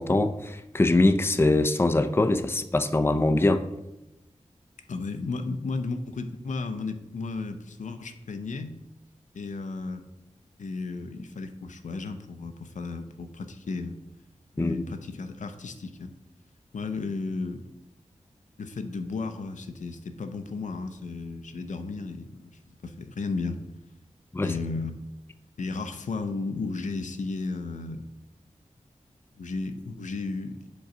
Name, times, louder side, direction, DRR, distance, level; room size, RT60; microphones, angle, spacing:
voice 1, 0.0-3.6 14.6-14.8 24.3-24.5, left 2 dB, 20° left, 10 dB, 0.5 m, -23 dB
voice 2, 4.9-8.8 9.3-10.0 10.6-14.0 14.5-16.1 16.7-17.7 18.6-23.6 24.4-25.0 25.6-28.0 29.4-30.7, left 3 dB, 75° left, 8 dB, 0.5 m, -34 dB
5.2 x 3.9 x 5.9 m, 0.91 s
cardioid pair, 55°, 13 cm